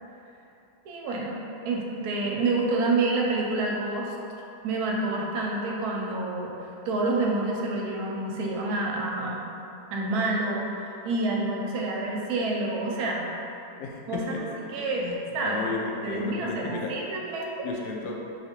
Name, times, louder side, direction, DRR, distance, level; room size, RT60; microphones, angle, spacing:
voice 1, 0.8-1.4 1.6-4.1 4.6-9.5 9.9-13.3 14.1-14.2 14.6-15.7 16.0-17.7, right 2 dB, 75° right, -2 dB, 1.1 m, -28 dB
voice 2, 13.8-14.4 14.9-16.9 17.6-18.1, left 4 dB, 85° left, -1 dB, 1.2 m, -34 dB
4.7 x 3.2 x 2.9 m, 2.8 s
omnidirectional pair, 1.7 m